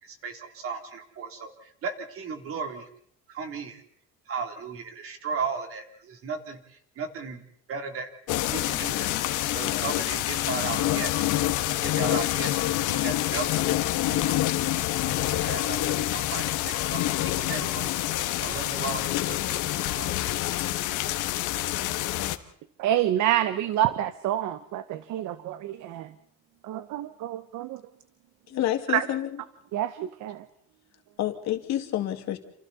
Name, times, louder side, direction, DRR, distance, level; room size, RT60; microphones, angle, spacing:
voice 1, 0.0-2.9 3.3-3.8 4.3-7.4 7.7-8.1 8.4-13.7 14.1-14.4 14.7-18.0 18.4-20.5, right 5 dB, 45° right, 5 dB, 3.3 m, -36 dB
sound 1, 8.3-22.4, left 15 dB, 80° left, 1.4 m, -27 dB
voice 2, 22.8-26.1 26.7-27.8 28.9-29.0 29.7-30.4, right 12 dB, 70° right, 13 dB, 1.0 m, -27 dB
voice 3, 28.5-29.4 31.2-32.4, left 12 dB, 60° left, 6 dB, 2.3 m, -28 dB
28.5 x 28.0 x 4.2 m, 0.66 s
cardioid pair, 150°, 30 cm